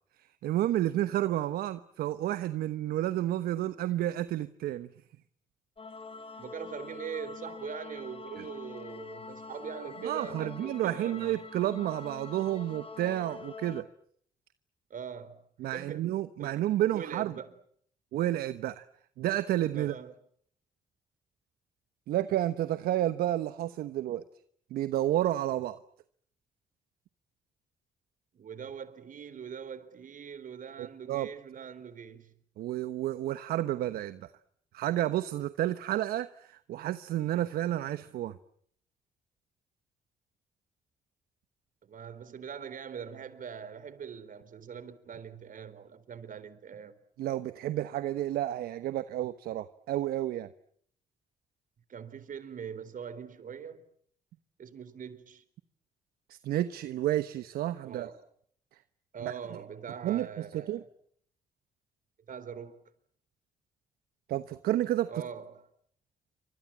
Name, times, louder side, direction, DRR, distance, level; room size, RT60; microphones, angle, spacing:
voice 1, 0.4-4.9 8.4-8.5 10.0-13.9 15.6-17.3 18.1-18.8 19.2-19.9 22.1-24.2 24.7-25.8 30.8-31.3 32.6-34.3 34.7-38.4 47.2-50.5 56.3-58.1 59.2-59.3 60.0-60.8 64.3-65.1, right 13 dB, 80° right, 1.1 m, -31 dB
sound 1, 5.8-13.8, left 4 dB, 40° left, 3.6 m, -45 dB
voice 2, 6.4-11.4 14.9-16.1 16.4-16.6 16.9-17.5 19.7-20.1 28.3-32.3 41.8-46.9 51.9-53.8 54.6-55.4 57.8-58.2 59.1-60.9 62.3-62.8 65.1-65.6, right 7 dB, 60° right, 4.1 m, -42 dB
29.0 x 25.5 x 7.6 m
supercardioid pair, 50°, 15 cm